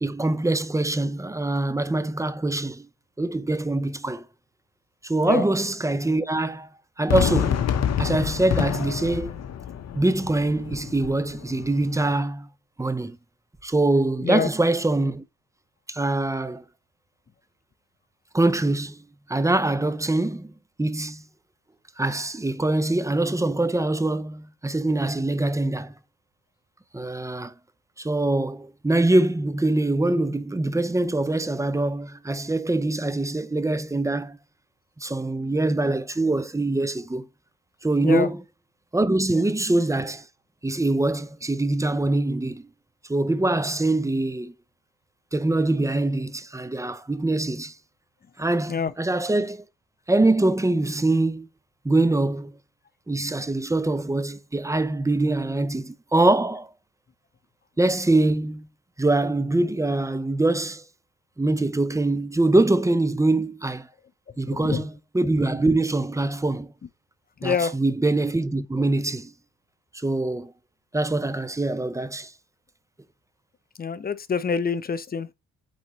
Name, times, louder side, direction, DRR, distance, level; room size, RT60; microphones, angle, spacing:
voice 1, 0.0-2.9 3.2-4.2 5.0-6.7 7.0-7.6 8.0-9.4 9.9-12.5 12.8-13.2 13.6-15.3 15.9-16.6 18.3-19.0 19.3-21.2 22.0-25.9 26.9-27.5 28.0-34.4 35.0-37.3 37.8-38.4 38.9-40.2 40.6-42.7 43.1-44.5 45.3-47.7 48.4-49.6 50.1-51.5 51.8-52.5 53.1-56.7 57.8-58.7 59.0-60.8 61.4-63.9 64.4-66.7 67.4-69.3 69.9-70.5 70.9-72.3, right 2 dB, 10° right, 0.6 m, -24 dB
Fireworks, 7.1-12.1, left 9 dB, 60° left, 1.0 m, -27 dB
voice 2, 64.5-64.8 67.4-67.7 73.8-75.3, left 6 dB, 30° left, 0.7 m, -26 dB
8.6 x 4.0 x 3.1 m
cardioid pair, 90°, 30 cm